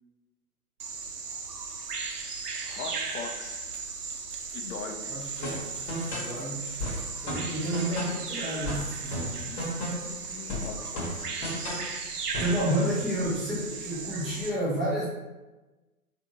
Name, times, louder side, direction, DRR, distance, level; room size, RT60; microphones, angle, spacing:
Bird vocalization bird call bird song, 0.8-14.5, right 4 dB, 85° right, 0.6 m, -37 dB
voice 1, 2.6-3.6 4.5-5.2 10.0-11.9 12.3-12.7, left 5 dB, 60° left, 3 dB, 0.7 m, -41 dB
voice 2, 5.1-5.6 6.1-6.7 7.2-9.7 12.4-15.0, right 1 dB, ahead, -12 dB, 0.4 m, -30 dB
sound 1, 5.4-6.4 6.8-8.3 8.6-10.2 10.5-11.9 12.3-12.6, left 1 dB, 45° left, 1.2 m, -34 dB
3.3 x 2.7 x 2.8 m, 1.1 s
figure-of-eight pair, 115°, 45 cm